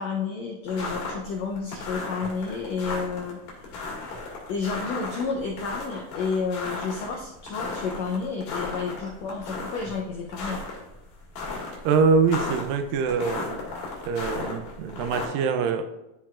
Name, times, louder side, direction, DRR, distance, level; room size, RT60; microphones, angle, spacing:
voice 1, 0.0-3.6 4.5-10.6, left 5 dB, 90° left, 1 dB, 1.5 m, -31 dB
sound 1, 0.7-15.3, left 3 dB, 70° left, 3.4 m, -35 dB
voice 2, 11.8-13.7 14.1-15.8, right 5 dB, 85° right, 8 dB, 2.3 m, -24 dB
13.0 x 4.6 x 2.4 m, 0.93 s
omnidirectional pair, 4.0 m